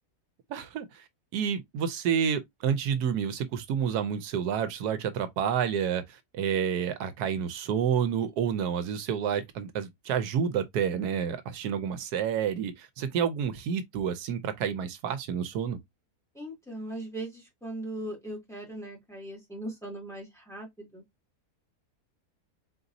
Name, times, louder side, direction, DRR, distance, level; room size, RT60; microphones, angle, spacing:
voice 1, 0.5-1.0 1.3-15.8, right 8 dB, 80° right, 1.2 m, -29 dB
voice 2, 16.3-21.0, right 1 dB, ahead, 2.1 m, -39 dB
4.1 x 3.9 x 2.6 m
omnidirectional pair, 1.7 m